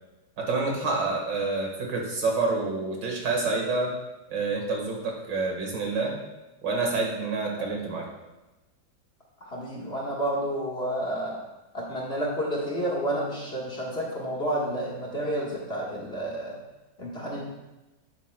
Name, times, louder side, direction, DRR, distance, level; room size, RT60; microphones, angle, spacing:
voice 1, 0.4-3.9 4.3-6.1 6.6-8.1, right 3 dB, 65° right, 0 dB, 2.2 m, -28 dB
voice 2, 9.4-11.4 11.7-16.6 17.0-17.5, right 1 dB, 35° left, -5 dB, 1.6 m, -30 dB
11.0 x 8.0 x 2.2 m, 1.1 s
omnidirectional pair, 2.1 m